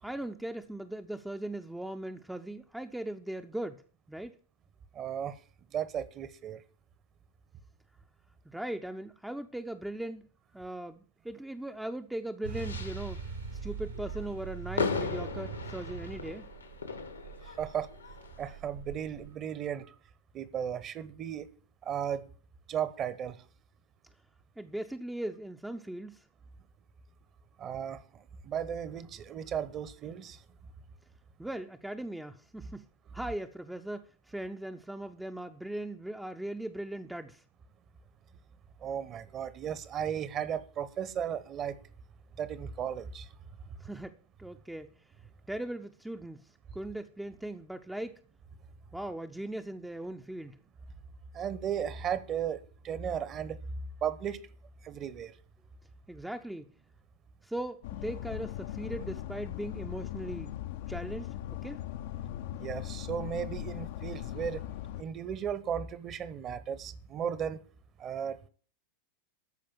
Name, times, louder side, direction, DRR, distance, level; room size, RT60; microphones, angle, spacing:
voice 1, 0.0-3.8 4.1-4.3 8.4-10.3 10.5-13.2 13.6-16.5 24.6-26.2 31.4-32.9 33.1-37.4 43.8-44.9 45.5-48.2 48.9-50.6 56.1-56.7 57.4-60.6 60.9-61.3 61.6-61.8, right 1 dB, 5° right, 0.6 m, -39 dB
voice 2, 4.9-5.4 5.7-6.6 17.4-17.9 18.4-19.9 20.3-21.5 21.8-22.3 22.7-23.4 27.6-30.4 38.8-41.8 42.4-43.3 51.3-53.6 54.0-54.4 54.8-55.4 62.6-64.7 65.0-67.6 68.0-68.5, right 8 dB, 30° right, 1.0 m, -35 dB
sound 1, 12.4-19.3, right 5 dB, 70° right, 1.9 m, -42 dB
sound 2, 12.5-13.3 13.9-18.6, left 5 dB, 80° left, 1.4 m, -38 dB
sound 3, 57.8-65.0, left 13 dB, 55° left, 0.6 m, -39 dB
13.5 x 5.1 x 8.7 m
figure-of-eight pair, 90°, 0 cm